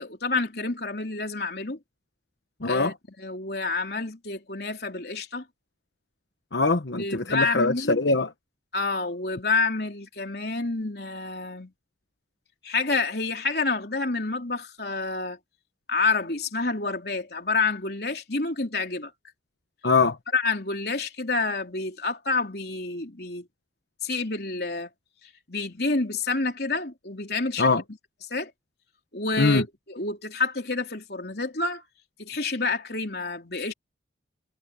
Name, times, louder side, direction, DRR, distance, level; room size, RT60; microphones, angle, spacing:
voice 1, 0.0-1.8 2.7-5.5 7.0-8.0 8.7-11.7 12.6-15.4 15.9-19.1 20.3-23.5 24.0-24.9 25.2-27.7 28.3-28.5 29.1-31.8 32.2-33.7, left 3 dB, 60° left, 3.5 m, -28 dB
voice 2, 2.6-2.9 6.5-8.3 19.8-20.2 27.6-27.8 29.4-29.6, left 3 dB, 75° left, 1.2 m, -22 dB
head